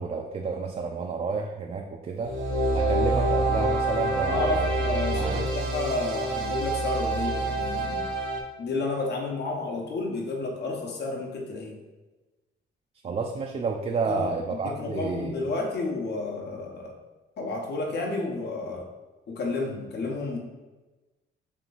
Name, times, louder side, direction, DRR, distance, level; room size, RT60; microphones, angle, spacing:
voice 1, 0.0-2.3 2.7-4.7 5.1-5.5 13.0-15.4, right 4 dB, 35° right, 2 dB, 0.4 m, -30 dB
sound 1, 2.2-8.4, right 2 dB, 80° right, 0.7 m, -27 dB
voice 2, 4.3-8.0 8.6-11.8 13.9-16.9 17.4-18.8 19.3-20.4, left 3 dB, 60° left, 1 dB, 0.9 m, -31 dB
3.3 x 3.0 x 3.9 m, 1.1 s
cardioid pair, 90°, 20 cm